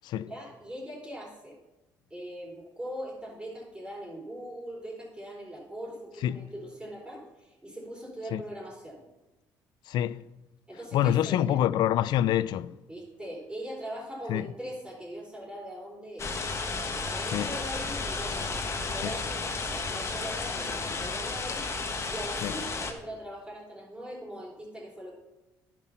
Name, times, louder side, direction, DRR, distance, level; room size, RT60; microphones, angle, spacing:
voice 1, 0.2-1.6 2.1-9.0 10.7-11.6 12.9-16.4 16.9-21.6 22.0-25.1, equal, 15° right, 4.1 m, -41 dB
voice 2, 9.9-10.3 10.9-12.8 14.3-14.5 17.3-17.5 19.0-19.1 22.4-22.5, left 11 dB, 70° left, 0.4 m, -26 dB
sound 1, 16.2-22.9, left 3 dB, 35° left, 1.4 m, -33 dB
10.5 x 6.0 x 5.8 m
supercardioid pair, 80°, 8 cm